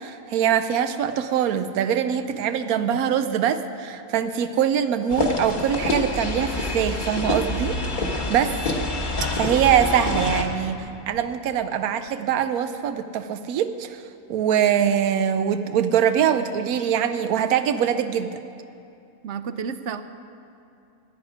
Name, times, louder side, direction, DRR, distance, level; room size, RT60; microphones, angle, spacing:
voice 1, 0.0-8.5 9.3-14.0 14.3-18.4, right 9 dB, 90° right, 9 dB, 1.1 m, -23 dB
sound 1, 5.1-10.4, left 2 dB, 35° left, 1.2 m, -27 dB
voice 2, 19.2-20.0, right 6 dB, 65° right, 11 dB, 0.8 m, -31 dB
18.0 x 9.7 x 4.9 m, 2.6 s
omnidirectional pair, 1.5 m